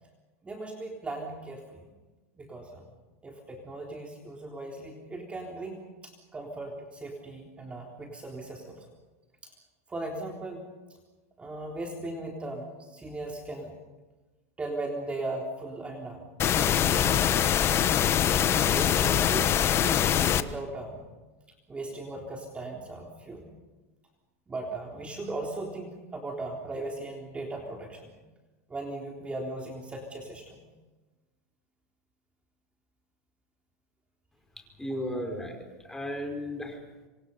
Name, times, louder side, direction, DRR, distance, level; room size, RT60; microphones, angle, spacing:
voice 1, 0.4-1.6 2.4-2.9 3.2-8.9 9.4-9.5 9.9-10.6 11.4-13.8 14.6-17.3 18.4-21.0 21.7-23.5 24.5-28.1 28.7-30.6, right 2 dB, 15° right, 0 dB, 3.7 m, -38 dB
sound 1, 16.4-20.4, left 10 dB, 35° left, 1.2 m, -23 dB
voice 2, 34.8-36.8, left 1 dB, 5° left, 4 dB, 5.1 m, -35 dB
26.5 x 25.5 x 5.6 m, 1.2 s
supercardioid pair, 120°, 8 cm